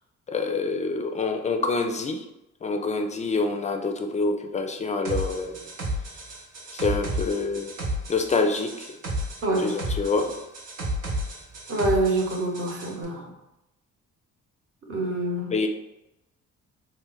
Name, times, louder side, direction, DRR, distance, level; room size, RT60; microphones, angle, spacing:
voice 1, 0.3-2.3 2.6-5.6 6.7-7.7 8.1-9.0 9.6-10.4 15.5-15.7, left 3 dB, 25° left, 5 dB, 0.4 m, -26 dB
sound 1, 5.0-12.9, equal, 75° right, 0.8 m, -32 dB
voice 2, 11.7-13.3 14.9-15.5, right 2 dB, 45° right, 0 dB, 0.9 m, -26 dB
3.1 x 2.1 x 3.8 m, 0.91 s
cardioid pair, 90°, 30 cm